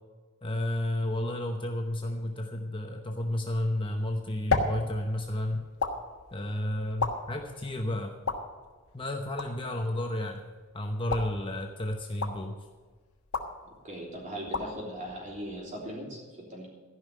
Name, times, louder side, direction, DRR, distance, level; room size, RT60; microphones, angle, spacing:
voice 1, 0.4-5.7 6.3-8.1 8.9-10.4 10.7-12.5, left 1 dB, 20° left, 3 dB, 0.8 m, -32 dB
sound 1, 3.8-16.0, left 3 dB, 75° left, 1.4 m, -37 dB
voice 2, 13.6-16.7, equal, 35° right, -2 dB, 3.4 m, -39 dB
14.0 x 5.6 x 9.6 m, 1.4 s
head